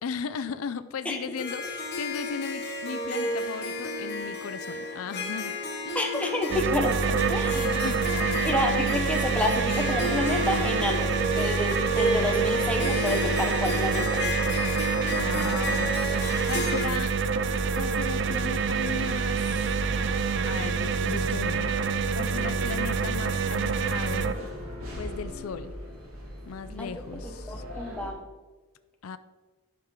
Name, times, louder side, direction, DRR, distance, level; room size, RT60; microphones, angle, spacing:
voice 1, 0.0-6.0 7.5-8.5 15.0-16.0 16.4-17.1 17.7-19.4 20.4-21.7 22.1-24.4 25.0-25.7 26.4-27.6 29.0-29.2, left 6 dB, 85° left, 12 dB, 0.4 m, -37 dB
Harp, 1.4-16.9, left 1 dB, 50° left, 1.3 m, -31 dB
voice 2, 5.9-7.8 8.4-11.1 11.3-14.2 26.8-26.9 27.5-28.3, left 1 dB, 5° left, 2 dB, 0.9 m, -29 dB
sound 1, 6.5-24.3, right 5 dB, 55° right, 0.4 m, -27 dB
sound 2, 17.3-28.1, left 1 dB, 85° right, 3.0 m, -41 dB
11.0 x 5.9 x 3.7 m, 1.3 s
head